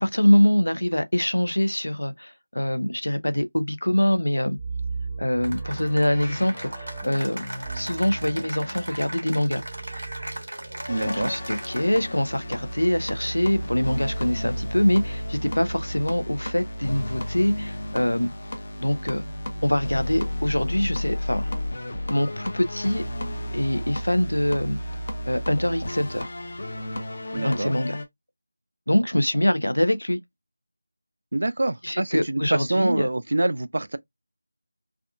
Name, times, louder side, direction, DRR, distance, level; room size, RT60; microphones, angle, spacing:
voice 1, 0.0-4.6 5.2-7.4 7.7-9.6 11.1-18.3 18.8-19.2 19.6-21.5 22.1-23.0 23.5-24.8 25.3-26.3 27.4-28.0 28.9-30.2 31.8-33.1, left 1 dB, 90° left, 0.5 m, -24 dB
sound 1, 4.6-14.4 15.4-16.4, right 3 dB, 10° left, 0.8 m, -39 dB
Cheering / Applause, 5.4-12.1, right 1 dB, 80° right, 1.4 m, -37 dB
sound 2, 10.9-28.1, left 1 dB, 50° left, 0.8 m, -32 dB
voice 2, 10.9-11.3 27.3-27.7 31.3-34.0, right 2 dB, 65° right, 0.4 m, -25 dB
3.5 x 2.3 x 2.4 m
figure-of-eight pair, 170°, 0 cm